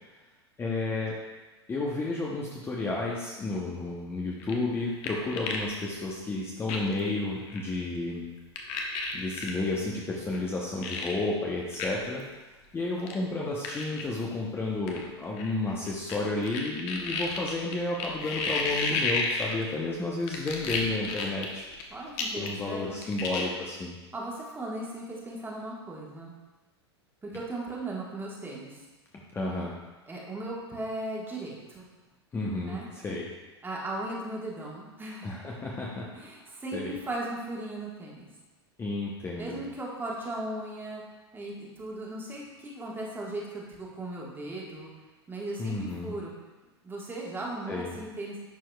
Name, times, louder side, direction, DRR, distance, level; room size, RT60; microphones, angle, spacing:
voice 1, 0.6-1.2 1.7-8.3 8.7-8.8 9.1-12.2 12.7-21.7 22.3-24.0 29.3-29.7 32.3-33.3 35.2-36.3 36.7-36.9 38.8-39.6 45.6-46.1 47.7-48.0, left 2 dB, 15° left, -3 dB, 0.8 m, -32 dB
sound 1, 4.4-5.7 6.0-6.1 6.7-7.0 7.5-7.6 8.6-9.5 10.3-10.4 10.8-11.1 11.7-11.9 12.2-12.3 13.0-13.1 13.6-14.0 14.9-16.2 16.5-19.8 20.3-21.8 22.2-22.7 22.9-23.4, left 4 dB, 45° left, 1.0 m, -32 dB
voice 2, 21.9-22.9 24.1-26.3 27.2-28.8 30.1-31.9 32.6-32.9 33.6-35.3 36.1-38.3 39.4-41.0 41.3-44.9 45.3-46.3 46.8-48.4, right 2 dB, 15° right, -3 dB, 1.5 m, -37 dB
10.5 x 4.6 x 2.3 m, 1.2 s
hypercardioid pair, 95°, 14 cm